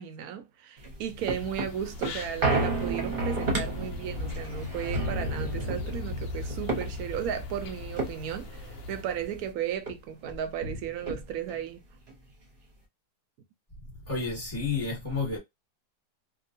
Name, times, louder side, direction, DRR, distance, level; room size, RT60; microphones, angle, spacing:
voice 1, 0.0-11.8, right 9 dB, 70° right, 0.9 m, -35 dB
sound 1, 0.8-9.5 9.9-10.0 10.2-11.6 12.1-12.2, right 1 dB, 40° right, 0.8 m, -32 dB
sound 2, 1.2-9.0, left 3 dB, 70° left, 0.7 m, -45 dB
voice 2, 14.1-15.4, left 4 dB, 20° left, 1.2 m, -30 dB
2.8 x 2.1 x 2.7 m
omnidirectional pair, 1.8 m